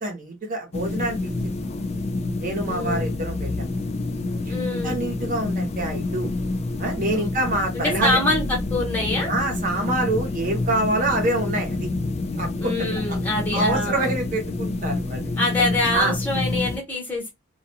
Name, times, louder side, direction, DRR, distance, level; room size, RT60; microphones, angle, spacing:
voice 1, 0.0-1.9 2.4-3.8 4.4-4.5 4.8-6.3 6.8-8.2 9.3-11.9 12.4-13.2 13.5-15.3 15.9-16.2, right 2 dB, 40° right, 0.8 m, -26 dB
sound 1, 0.7-16.8, left 2 dB, 30° left, 0.3 m, -28 dB
voice 2, 2.7-3.1 4.5-5.0 7.1-7.3 7.7-9.3 12.6-14.1 15.4-17.3, left 2 dB, 10° left, 0.8 m, -25 dB
2.3 x 2.2 x 2.6 m
head